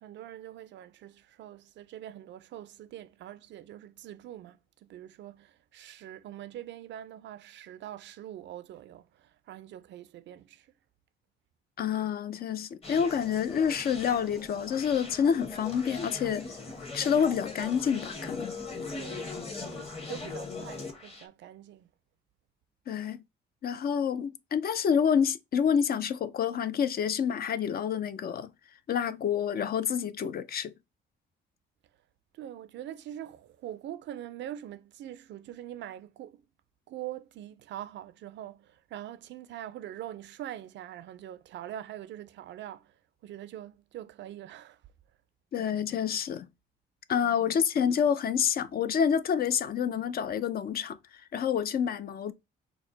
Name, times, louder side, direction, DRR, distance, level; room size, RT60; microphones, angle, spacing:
voice 1, 0.0-10.7 19.0-19.3 19.7-21.9 32.3-36.4 36.9-42.9 43.2-44.8 47.2-47.5, right 12 dB, 65° right, 0.4 m, -43 dB
voice 2, 11.8-16.5 16.9-18.6 22.9-23.2 23.6-28.5 28.9-30.7 45.5-46.5 47.1-51.0 51.3-52.3, left 7 dB, 50° left, 0.4 m, -28 dB
Conversation, 12.8-21.3, left 3 dB, 30° left, 1.1 m, -40 dB
4.5 x 2.1 x 3.8 m
cardioid pair, 90°, 20 cm